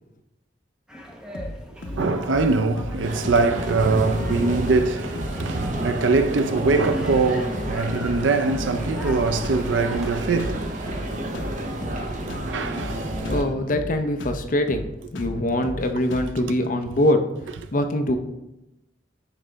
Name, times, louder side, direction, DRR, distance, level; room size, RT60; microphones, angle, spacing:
sound 1, 0.9-10.2, equal, 5° right, 0.8 m, -38 dB
sound 2, 1.3-1.6 1.8-2.0 2.3-2.5 2.8-3.0 3.2-3.5 3.7-3.9 4.2-4.4 4.7-4.9 5.2-5.4 5.6-5.9 6.1-6.3 6.6-6.8 7.1-7.3 7.5-7.8 8.0-8.2 8.5-9.2 9.4-9.7 9.9-10.1 10.4-10.6 10.9-11.1 11.3-11.6 11.8-12.0 12.3-12.5 12.8-13.0 13.2-13.5 13.7-13.9 14.2-14.4 14.7-14.9 15.2-15.4 15.6-15.8 16.1-16.3, left 1 dB, 75° left, 0.9 m, -34 dB
voice 1, 1.8-13.4 16.4-16.5, right 3 dB, 75° right, 0.5 m, -24 dB
sound 3, 3.0-13.4, right 1 dB, 40° right, 0.8 m, -30 dB
voice 2, 13.3-17.2 17.7-18.2, left 1 dB, 45° left, 0.6 m, -23 dB
10.0 x 3.9 x 3.4 m
head